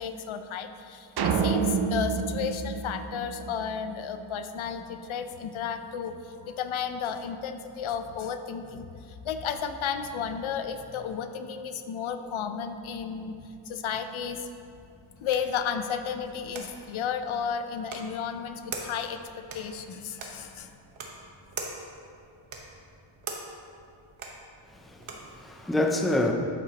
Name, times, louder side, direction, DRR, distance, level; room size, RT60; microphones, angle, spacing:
voice 1, 0.0-13.4 13.7-14.5 15.2-19.2 19.5-20.7, left 7 dB, 75° left, 8 dB, 0.7 m, -33 dB
sound 1, 1.2-3.7, right 5 dB, 55° right, 0.6 m, -28 dB
sound 2, 14.6-25.4, right 4 dB, 90° right, 1.3 m, -44 dB
voice 2, 24.7-26.3, left 1 dB, ahead, 2 dB, 0.5 m, -27 dB
11.5 x 8.5 x 2.9 m, 2.5 s
wide cardioid pair, 155°, 49 cm